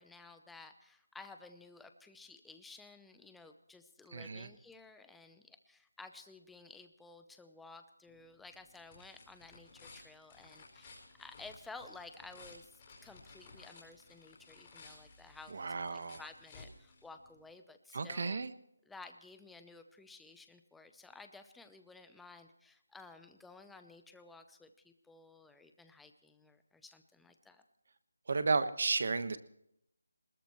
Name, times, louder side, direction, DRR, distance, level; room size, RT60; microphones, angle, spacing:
voice 1, 0.0-12.7 13.0-18.4 18.9-27.6, left 3 dB, ahead, 7 dB, 0.7 m, -54 dB
voice 2, 4.1-4.5 15.5-16.2 17.9-18.5 28.3-29.4, right 4 dB, 40° right, 11 dB, 1.3 m, -33 dB
sound 1, 8.1-17.5, left 3 dB, 20° left, 4.6 m, -57 dB
22.5 x 21.0 x 3.1 m, 0.77 s
figure-of-eight pair, 175°, 0 cm